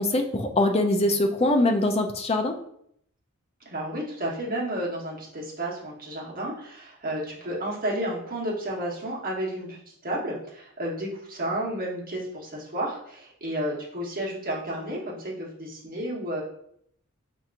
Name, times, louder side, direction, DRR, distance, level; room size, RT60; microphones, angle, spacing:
voice 1, 0.0-2.6, left 2 dB, 30° left, 5 dB, 0.4 m, -23 dB
voice 2, 3.6-9.8 10.0-16.4, right 1 dB, 40° right, -4 dB, 1.2 m, -32 dB
5.8 x 2.8 x 2.5 m, 0.70 s
head